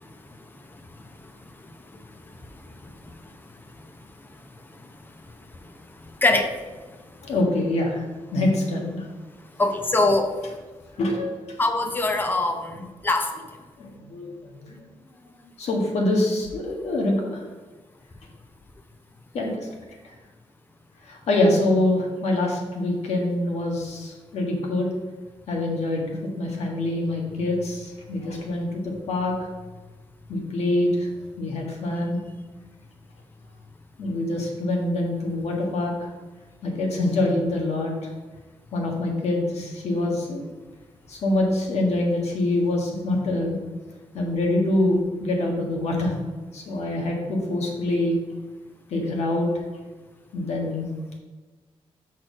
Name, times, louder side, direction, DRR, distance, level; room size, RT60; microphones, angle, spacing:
voice 1, 7.2-8.0 8.3-9.0 11.0-11.3 13.8-14.3 14.6-14.7 15.6-17.4 19.3-19.7 21.1-24.9 25.5-29.3 30.3-31.1 31.4-32.2 34.0-36.1 36.6-37.9 38.7-40.4 41.1-43.6 44.1-46.1 46.5-48.1 48.9-49.5 50.3-50.9, left 1 dB, 80° left, 0 dB, 1.6 m, -25 dB
voice 2, 9.6-10.2 11.6-13.3, left 2 dB, 20° left, 5 dB, 0.7 m, -22 dB
6.2 x 4.3 x 6.1 m, 1.2 s
wide cardioid pair, 170°, 11 cm